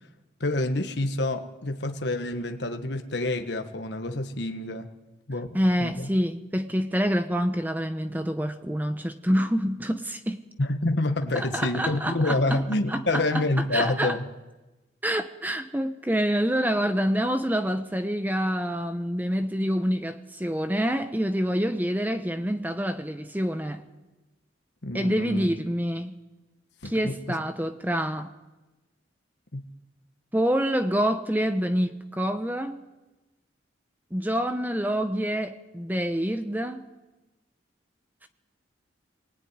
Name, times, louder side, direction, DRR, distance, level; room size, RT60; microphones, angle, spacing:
voice 1, 0.4-4.9 5.3-6.1 10.6-14.2 24.8-25.5 26.8-27.1 29.5-29.6, left 2 dB, 60° left, 1.4 m, -27 dB
voice 2, 5.5-10.4 11.3-12.6 12.9-13.4 13.7-14.2 15.0-23.8 24.9-26.1 26.8-28.3 30.3-32.8 34.1-36.9, equal, 10° right, 0.9 m, -27 dB
24.0 x 20.0 x 9.6 m
head